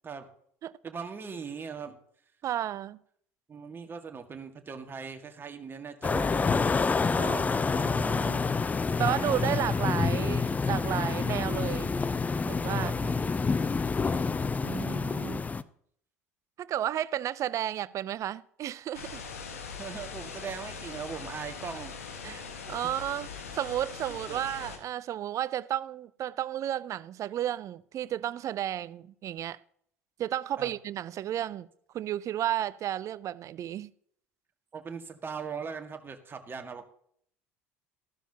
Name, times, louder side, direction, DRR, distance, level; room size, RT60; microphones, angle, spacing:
voice 1, 0.8-2.0 3.5-7.1 12.8-13.3 19.8-21.9 22.2-22.5 24.1-24.4 30.6-30.7 34.7-36.9, right 6 dB, 30° right, 1.8 m, -40 dB
voice 2, 2.4-3.0 7.1-7.5 7.8-8.4 9.0-11.9 12.4-12.9 14.6-15.5 16.6-19.2 22.2-29.6 30.2-31.7 31.9-33.9, right 11 dB, 45° right, 0.5 m, -33 dB
sound 1, 6.0-15.6, left 4 dB, 20° left, 0.6 m, -28 dB
sound 2, 18.9-24.8, left 5 dB, 85° left, 1.5 m, -41 dB
14.0 x 12.5 x 2.9 m
hypercardioid pair, 70°, 7 cm